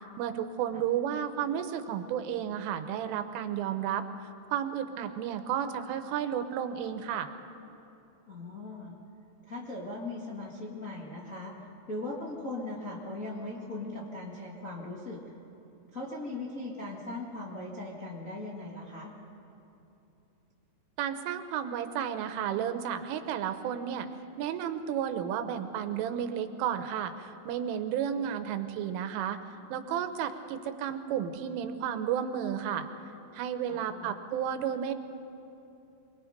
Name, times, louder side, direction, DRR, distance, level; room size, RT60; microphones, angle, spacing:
voice 1, 0.2-4.0 4.5-7.3 21.0-24.1 24.4-29.4 29.7-32.9 33.3-34.9, right 9 dB, 85° right, 9 dB, 3.4 m, -32 dB
voice 2, 8.3-8.9 9.5-11.5 11.9-15.2 15.9-19.1 33.7-34.1, left 2 dB, 75° left, -5 dB, 0.7 m, -39 dB
26.5 x 21.0 x 5.2 m, 2.9 s
omnidirectional pair, 5.7 m